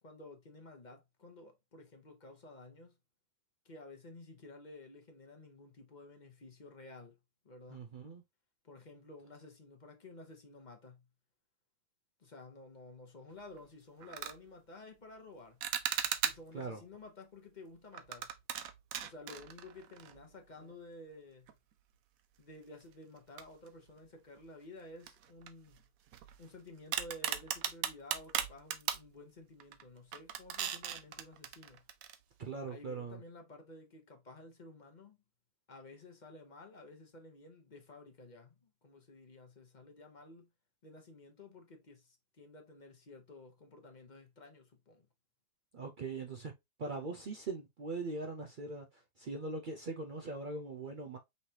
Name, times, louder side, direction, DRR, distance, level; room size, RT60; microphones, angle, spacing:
voice 1, 0.0-3.0 3.6-7.2 7.4-7.9 8.6-11.1 12.2-15.6 16.2-18.3 19.0-21.5 22.4-25.8 26.4-31.8 32.7-35.2 35.7-40.5 40.8-45.1, left 2 dB, 35° left, 0.9 m, -53 dB
voice 2, 7.7-8.2 16.5-16.8 32.4-33.2 45.7-46.5 46.8-51.2, right 3 dB, 90° right, 0.4 m, -41 dB
sound 1, 13.4-13.6 14.0-14.4 15.6-16.6 17.9-20.3 20.6-20.7 21.5-21.6 23.4-24.0 24.4-24.5 25.0-26.5 26.9-29.1 29.6-29.8 30.1-32.2, right 9 dB, 70° right, 1.0 m, -38 dB
5.5 x 3.2 x 2.8 m
omnidirectional pair, 1.6 m